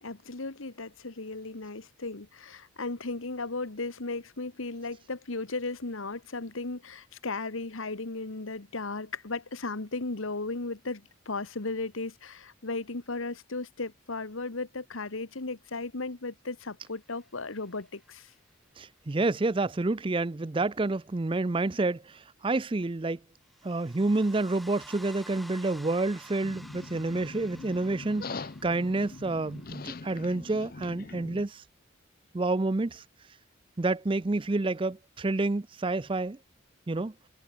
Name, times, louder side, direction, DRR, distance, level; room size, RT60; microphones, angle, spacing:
voice 1, 0.0-18.3, left 3 dB, 80° left, 1.5 m, -36 dB
sound 1, 17.1-18.2 23.4-30.2, equal, ahead, 4.0 m, -52 dB
voice 2, 18.8-23.2 23.6-31.6 32.3-33.0 33.8-36.4 36.9-37.1, right 2 dB, 25° right, 0.5 m, -29 dB
sound 2, 26.4-31.4, left 3 dB, 45° left, 0.7 m, -42 dB
head